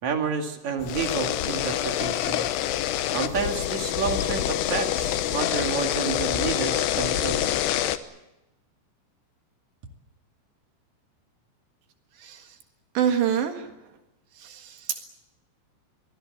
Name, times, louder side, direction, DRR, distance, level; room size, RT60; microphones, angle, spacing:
voice 1, 0.0-2.5 3.1-7.6, right 5 dB, 45° right, 4 dB, 3.0 m, -30 dB
sound 1, 0.8-8.0, left 12 dB, 75° left, 2.9 m, -26 dB
voice 2, 12.2-12.6 13.0-13.7 14.4-15.1, right 9 dB, 75° right, 5 dB, 3.9 m, -27 dB
23.5 x 21.5 x 8.0 m, 0.90 s
omnidirectional pair, 5.1 m